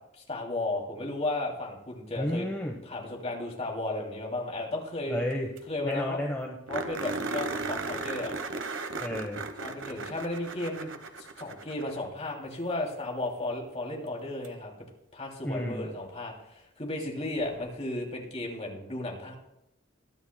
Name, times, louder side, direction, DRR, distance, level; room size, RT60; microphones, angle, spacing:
voice 1, 0.3-2.5 2.8-5.2 5.7-6.2 6.7-8.4 9.6-10.9 11.2-14.7 15.1-19.4, left 2 dB, 35° left, 0 dB, 2.8 m, -34 dB
voice 2, 2.2-2.7 5.1-5.5 5.8-6.6 9.0-9.4 15.4-15.9, left 1 dB, 10° left, 0 dB, 1.0 m, -31 dB
sound 1, 5.3-5.4 5.6-5.7 6.0-6.1 6.7-12.1 14.4-14.5 17.4-17.5, right 3 dB, 80° right, 1.1 m, -36 dB
21.5 x 10.5 x 2.2 m, 0.84 s
head